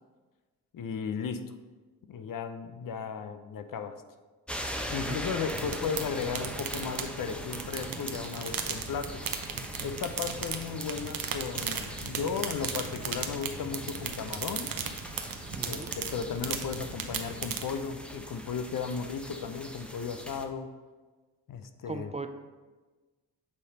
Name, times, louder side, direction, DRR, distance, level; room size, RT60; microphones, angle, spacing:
voice 1, 0.7-1.5 2.1-4.0 4.9-9.2 9.8-14.7 15.6-20.7 21.5-22.1, left 6 dB, 55° left, 9 dB, 0.7 m, -35 dB
sound 1, 4.5-20.4, equal, 5° left, 0.9 m, -41 dB
sound 2, 5.5-17.7, right 6 dB, 60° right, 0.9 m, -37 dB
voice 2, 15.6-15.9 21.8-22.3, right 3 dB, 15° right, 7 dB, 0.5 m, -38 dB
8.5 x 3.3 x 5.3 m, 1.3 s
supercardioid pair, 50°, 39 cm